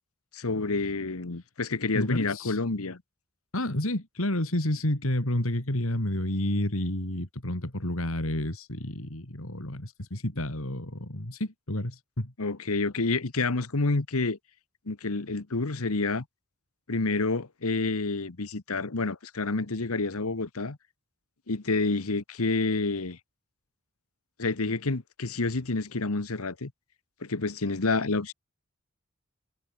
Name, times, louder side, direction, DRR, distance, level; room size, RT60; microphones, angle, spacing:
voice 1, 0.3-3.0 12.4-14.4 14.9-16.2 16.9-20.8 21.5-23.2 24.4-26.7 27.2-28.3, left 3 dB, 90° left, 1.3 m, -28 dB
voice 2, 1.9-2.6 3.5-12.3, left 1 dB, 75° left, 3.5 m, -30 dB
head